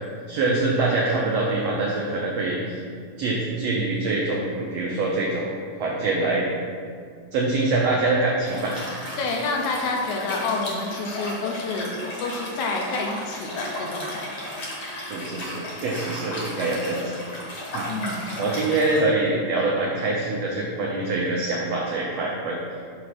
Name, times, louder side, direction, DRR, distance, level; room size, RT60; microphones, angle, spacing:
voice 1, 0.3-2.8 3.2-6.5 7.3-8.8 15.1-17.1 17.7-17.9 18.4-22.6, right 2 dB, 80° right, -3 dB, 1.5 m, -24 dB
Liquid, 8.4-19.0, left 1 dB, 45° left, 1.4 m, -34 dB
voice 2, 9.2-11.9 12.2-14.5 17.9-18.4, left 3 dB, 80° left, 1 dB, 1.9 m, -28 dB
6.8 x 3.2 x 5.8 m, 2.2 s
omnidirectional pair, 3.7 m